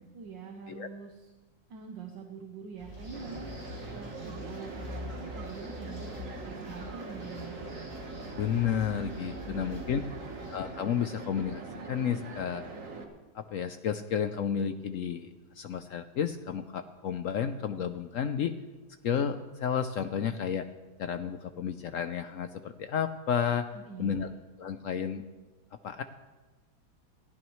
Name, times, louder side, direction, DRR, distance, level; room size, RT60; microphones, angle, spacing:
voice 1, 0.1-1.3 1.7-3.5 3.9-7.6 9.4-9.9 10.4-10.5 23.7-24.3, right 5 dB, 80° right, 3 dB, 1.8 m, -45 dB
sound 1, 2.8-10.6, left 1 dB, 20° right, 5.8 m, -44 dB
sound 2, 3.1-13.0, right 3 dB, 45° right, 1.7 m, -42 dB
voice 2, 8.4-10.0 10.5-12.6 13.3-15.3 15.6-18.5 19.0-20.7 21.0-23.7 24.0-24.3 24.6-25.3 25.8-26.0, left 8 dB, 70° left, 9 dB, 0.7 m, -31 dB
22.5 x 15.5 x 3.1 m, 1.3 s
omnidirectional pair, 2.0 m